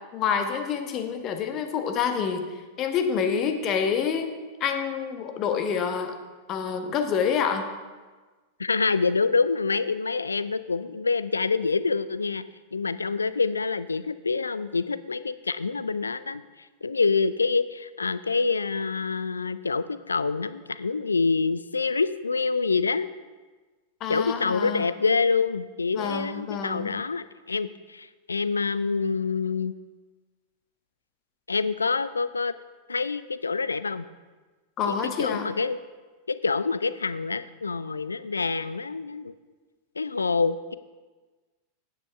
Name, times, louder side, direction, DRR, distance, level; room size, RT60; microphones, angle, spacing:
voice 1, 0.1-2.5 2.8-6.2 6.5-7.6 24.0-24.9 25.9-26.9 34.8-35.5, left 7 dB, 35° left, 6 dB, 1.0 m, -27 dB
voice 2, 8.6-12.4 12.7-16.4 16.8-23.1 24.1-29.7 31.5-32.5 32.9-34.1 34.9-35.8 36.3-39.3 40.0-40.7, left 4 dB, 75° left, 15 dB, 0.3 m, -26 dB
9.8 x 8.5 x 3.4 m, 1.3 s
figure-of-eight pair, 90°, 0 cm